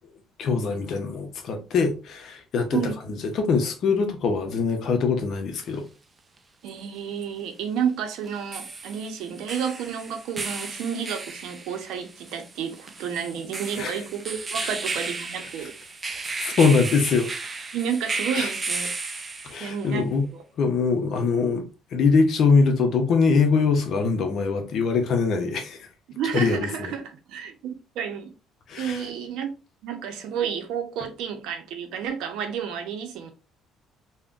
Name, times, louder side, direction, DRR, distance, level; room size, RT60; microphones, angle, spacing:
voice 1, 0.4-2.8 3.2-5.9 13.8-13.9 14.6-14.7 16.4-17.3 18.3-18.5 19.4-20.3 20.6-25.8 26.3-26.9 28.7-29.0, left 4 dB, 55° left, 0.6 m, -23 dB
sound 1, 5.6-5.7 8.2-19.8, right 3 dB, 25° right, 0.4 m, -34 dB
voice 2, 6.6-15.8 17.7-18.9 19.6-20.4 26.1-28.3 28.8-29.5 29.8-33.3, right 7 dB, 75° right, 0.6 m, -31 dB
3.5 x 2.1 x 2.4 m
cardioid pair, 105°, 0 cm